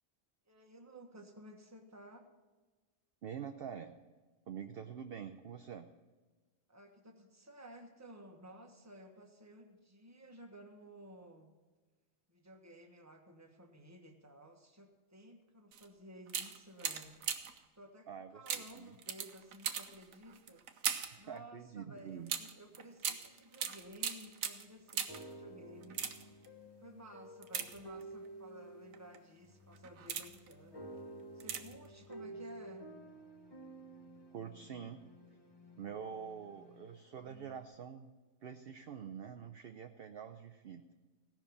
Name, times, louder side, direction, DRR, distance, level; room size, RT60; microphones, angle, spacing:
voice 1, 0.5-2.3 6.7-11.5 12.3-17.2 17.7-20.6 21.2-26.0 26.8-30.9 31.3-32.9, equal, 15° right, 3 dB, 1.2 m, -55 dB
voice 2, 3.2-4.0 4.5-5.9 18.1-18.9 21.1-22.3 34.3-35.0 35.8-38.1 38.4-40.8, right 7 dB, 55° right, 6 dB, 0.7 m, -46 dB
sound 1, 15.7-15.9 16.3-17.6 18.5-21.2 22.3-25.3 25.8-26.5 27.4-28.3 28.9-29.2 29.7-30.5 31.4-31.9 32.1-32.2, right 7 dB, 90° right, 1.2 m, -40 dB
sound 2, 23.8-23.9 24.5-37.6, right 2 dB, 20° left, 1.3 m, -52 dB
16.5 x 5.9 x 7.0 m, 1.3 s
omnidirectional pair, 1.4 m